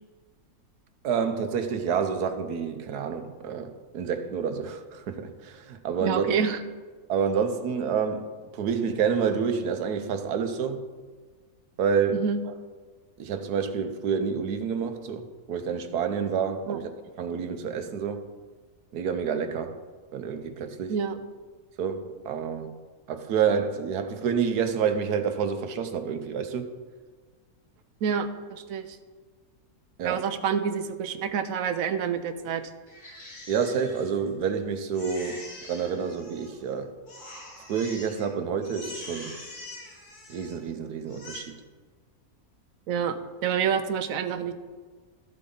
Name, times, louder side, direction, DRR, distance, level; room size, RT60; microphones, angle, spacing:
voice 1, 1.0-6.3 7.1-10.9 11.8-12.2 13.2-16.9 17.2-18.3 18.9-19.8 20.1-20.9 21.8-22.8 23.1-26.7 30.0-30.2 33.5-36.9 37.7-39.4 40.3-41.5, right 6 dB, 85° right, 1.4 m, -28 dB
voice 2, 6.0-6.6 12.1-12.4 16.7-16.8 20.9-21.2 28.0-29.0 30.0-32.7 42.9-44.5, right 7 dB, 70° right, 1.1 m, -28 dB
Crying sobbing, 32.9-34.6 34.9-36.7 37.1-38.3 38.6-40.7 41.0-41.4, left 2 dB, 75° left, 2.8 m, -44 dB
13.5 x 7.6 x 3.9 m
omnidirectional pair, 1.6 m